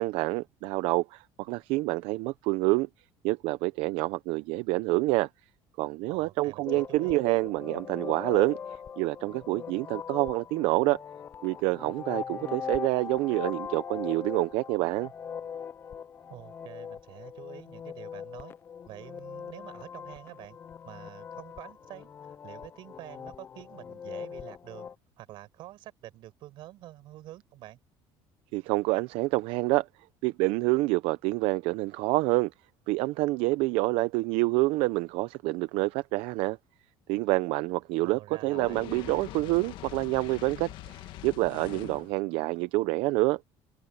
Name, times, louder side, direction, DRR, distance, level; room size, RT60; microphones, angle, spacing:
voice 1, 0.0-2.9 3.2-5.3 5.8-8.6 9.0-11.0 11.4-15.1 28.5-29.9 30.2-32.5 32.9-36.6 37.1-43.4, right 21 dB, 80° right, 0.6 m, -27 dB
voice 2, 6.1-7.2 16.3-18.5 18.9-20.6 20.8-24.9 25.2-27.8 38.0-38.9, right 15 dB, 60° right, 6.3 m, -47 dB
sound 1, 6.6-24.9, left 7 dB, 25° left, 0.4 m, -41 dB
Fire, 38.5-42.2, left 14 dB, 60° left, 1.8 m, -43 dB
cardioid pair, 160°, 9 cm